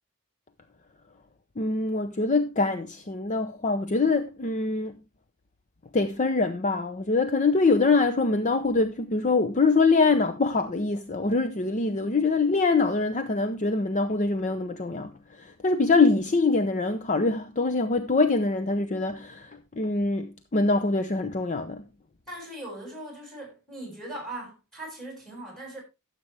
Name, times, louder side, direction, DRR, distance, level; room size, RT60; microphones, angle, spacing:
voice 1, 1.6-4.9 5.9-15.1 15.4-21.8, left 3 dB, 35° left, 0.6 m, -24 dB
voice 2, 22.3-25.8, right 1 dB, ahead, 6.7 m, -39 dB
14.0 x 7.5 x 3.4 m
head